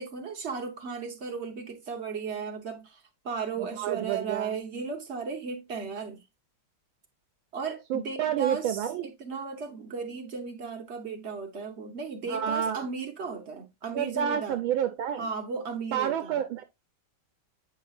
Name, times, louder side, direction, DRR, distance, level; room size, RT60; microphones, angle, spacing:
voice 1, 0.0-6.2 7.5-14.6 15.1-16.4, right 5 dB, 50° right, 0.8 m, -36 dB
voice 2, 3.6-4.5 7.9-9.1 12.3-12.8 13.9-15.3 15.9-16.6, right 9 dB, 75° right, 1.3 m, -29 dB
8.6 x 5.2 x 2.4 m
omnidirectional pair, 2.4 m